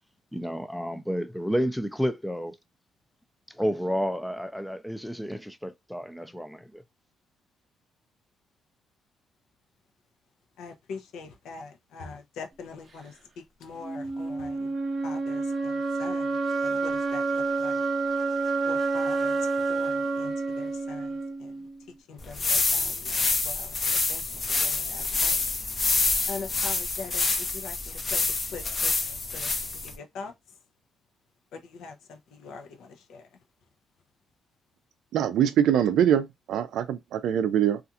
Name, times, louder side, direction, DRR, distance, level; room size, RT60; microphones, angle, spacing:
voice 1, 0.3-2.6 3.5-6.8, equal, 5° left, 0.4 m, -30 dB
voice 2, 10.6-13.1 13.6-14.5 15.0-15.4 16.0-16.3 16.6-17.2 17.6-17.7 18.7-19.4 19.7-21.1 22.1-22.9 23.4-23.6 24.1-24.2 24.6-25.3 26.3-27.2 27.6-27.7 28.1-28.2 28.5-28.9 29.3-29.5 30.0-30.3 31.7-31.9 32.4-32.7, left 4 dB, 80° left, 0.6 m, -41 dB
sound 1, 13.8-21.8, right 3 dB, 35° right, 0.7 m, -28 dB
sound 2, 22.2-30.0, left 3 dB, 40° left, 0.6 m, -27 dB
voice 3, 35.1-37.8, right 9 dB, 80° right, 0.4 m, -23 dB
2.4 x 2.4 x 2.7 m
cardioid pair, 90°, 0 cm